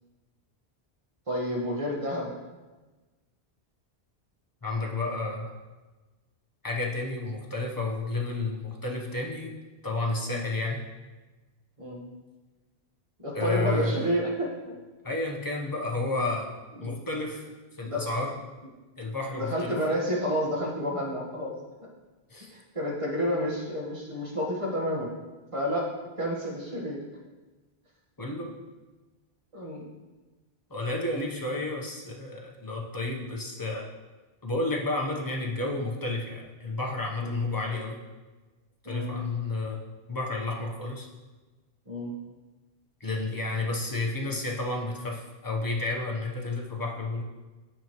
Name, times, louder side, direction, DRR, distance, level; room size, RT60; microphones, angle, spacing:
voice 1, 1.3-2.3 10.3-10.4 11.8-12.0 13.2-14.7 16.8-17.0 17.8-18.0 19.3-21.5 21.8-21.9 22.5-25.1 25.5-25.9 26.2-27.0 29.5-29.9 37.2-37.4 38.8-39.1 41.9-42.1, equal, 30° right, -3 dB, 1.4 m, -30 dB
voice 2, 4.6-5.5 6.6-9.5 9.8-10.8 13.3-13.9 15.0-16.5 16.8-17.4 17.8-18.3 19.0-19.8 22.3-22.5 28.2-28.5 30.7-33.9 34.4-38.0 38.8-39.8 40.1-41.1 43.0-47.2, left 2 dB, 20° left, -1 dB, 0.9 m, -31 dB
8.9 x 5.3 x 3.0 m, 1.2 s
omnidirectional pair, 1.1 m